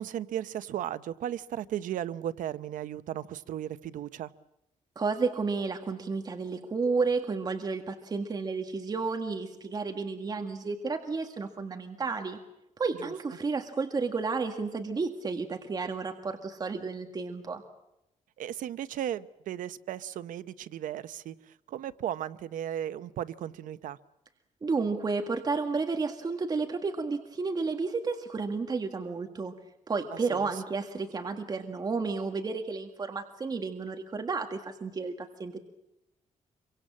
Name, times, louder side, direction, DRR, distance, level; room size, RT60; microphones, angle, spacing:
voice 1, 0.0-4.3 13.0-13.1 18.4-21.3 21.7-24.0 30.3-30.6, right 11 dB, 85° right, 13 dB, 0.9 m, -35 dB
voice 2, 5.0-12.4 12.8-17.6 24.6-29.5 29.9-35.6, right 4 dB, 30° right, 5 dB, 1.8 m, -32 dB
26.0 x 24.0 x 7.5 m, 0.88 s
cardioid pair, 140°, 13 cm